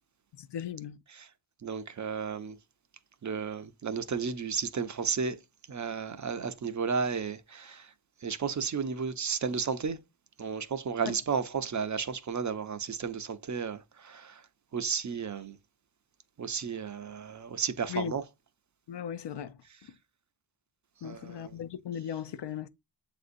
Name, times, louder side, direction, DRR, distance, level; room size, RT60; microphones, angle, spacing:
voice 1, 0.4-1.0 11.1-11.2 17.9-18.1 18.9-19.6 21.0-22.7, left 9 dB, 60° left, 0.5 m, -37 dB
voice 2, 1.6-2.6 3.2-5.4 5.7-7.9 8.2-10.0 10.4-14.4 14.7-15.6 16.4-18.2 21.0-21.6, right 6 dB, 40° right, 0.5 m, -33 dB
7.4 x 2.6 x 2.5 m
cardioid pair, 65°, 48 cm